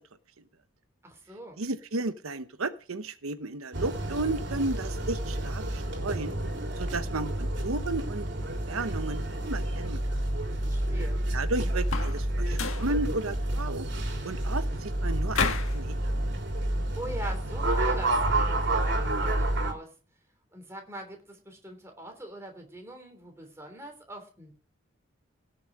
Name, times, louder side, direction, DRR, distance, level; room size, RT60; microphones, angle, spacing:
voice 1, 1.0-1.6 10.6-11.2 16.9-19.9 20.5-24.5, right 1 dB, 15° right, 3 dB, 3.3 m, -42 dB
voice 2, 1.6-6.3 6.8-8.3 8.7-10.0 11.3-13.9 14.2-16.1, right 2 dB, 90° right, 10 dB, 0.9 m, -33 dB
sound 1, 3.7-19.7, right 1 dB, 55° right, 3.6 m, -29 dB
sound 2, 11.8-12.2 12.5-12.9 15.3-15.8, left 5 dB, 80° left, 1.7 m, -30 dB
17.5 x 7.1 x 5.1 m, 0.37 s
head